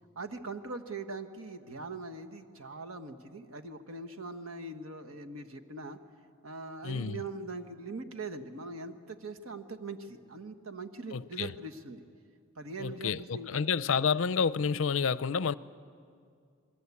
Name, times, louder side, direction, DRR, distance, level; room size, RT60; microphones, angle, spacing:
voice 1, 0.1-6.0 6.4-12.0 12.5-13.7, right 3 dB, 85° right, 1.5 m, -41 dB
voice 2, 6.8-7.2 11.1-11.5 12.8-15.5, left 6 dB, 65° left, 0.5 m, -29 dB
27.5 x 21.5 x 8.5 m
head